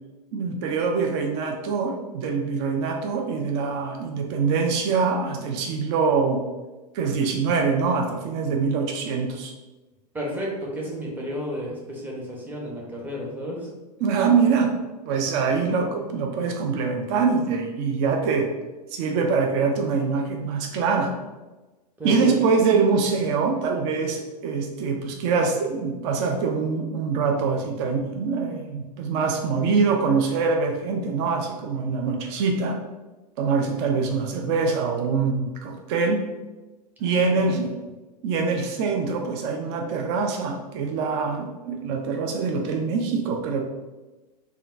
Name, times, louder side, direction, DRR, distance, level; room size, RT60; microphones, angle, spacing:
voice 1, 0.3-6.4 6.9-9.5 14.0-14.7 15.1-18.5 18.9-21.1 22.0-32.8 33.4-36.2 37.0-37.7 38.2-43.6, right 5 dB, 40° right, 3 dB, 0.4 m, -24 dB
voice 2, 10.1-13.7 22.0-22.2 37.0-37.6, equal, 10° right, -3 dB, 0.8 m, -32 dB
3.5 x 2.2 x 2.5 m, 1.1 s
figure-of-eight pair, 95°, 21 cm